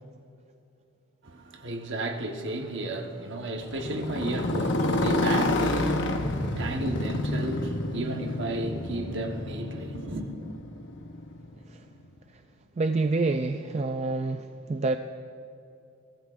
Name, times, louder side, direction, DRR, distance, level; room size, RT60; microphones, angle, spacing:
voice 1, 1.2-10.3, right 1 dB, 55° right, 1.2 m, -33 dB
Motorcycle, 3.6-11.7, left 1 dB, 55° left, 1.0 m, -29 dB
voice 2, 12.8-15.0, right 3 dB, 30° right, 0.3 m, -27 dB
23.5 x 15.0 x 2.5 m
head